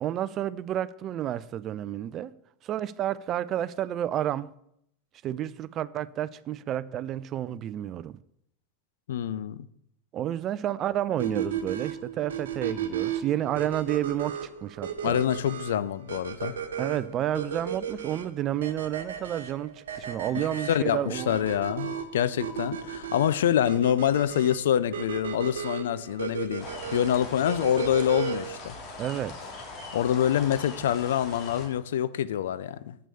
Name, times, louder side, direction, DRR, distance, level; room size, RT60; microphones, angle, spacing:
voice 1, 0.0-2.3 2.6-4.5 5.2-8.2 10.1-15.2 16.8-21.4 29.0-29.5, right 11 dB, 40° right, 0.4 m, -30 dB
voice 2, 9.1-9.7 15.0-16.6 20.3-28.8 29.9-33.0, left 10 dB, 70° left, 0.5 m, -26 dB
sound 1, 11.2-28.6, right 8 dB, 75° right, 1.2 m, -35 dB
sound 2, 26.6-31.7, left 3 dB, 45° left, 2.5 m, -41 dB
8.1 x 6.1 x 6.9 m
hypercardioid pair, 90°, 0 cm